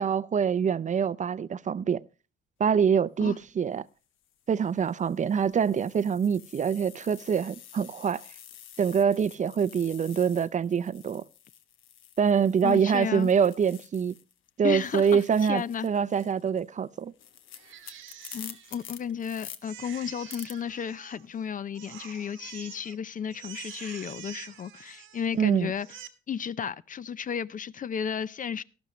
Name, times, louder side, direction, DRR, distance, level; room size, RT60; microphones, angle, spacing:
voice 1, 0.0-2.0 2.6-3.8 4.5-8.2 8.8-11.2 12.2-14.1 14.6-17.1 25.3-25.7, right 7 dB, 40° right, 0.5 m, -25 dB
sound 1, 3.2-3.5 4.2-14.4 14.6-19.6 20.3-20.5, left 10 dB, 80° left, 1.2 m, -49 dB
voice 2, 12.6-13.3 14.6-15.2 15.5-15.9 18.3-25.9 26.3-28.6, left 7 dB, 40° left, 0.6 m, -33 dB
Crying sobbing, 17.5-19.2 19.6-21.4 21.7-23.0 23.3-25.4 25.7-26.1, right 10 dB, 85° right, 1.4 m, -46 dB
13.0 x 12.0 x 3.1 m
cardioid pair, 90°, 20 cm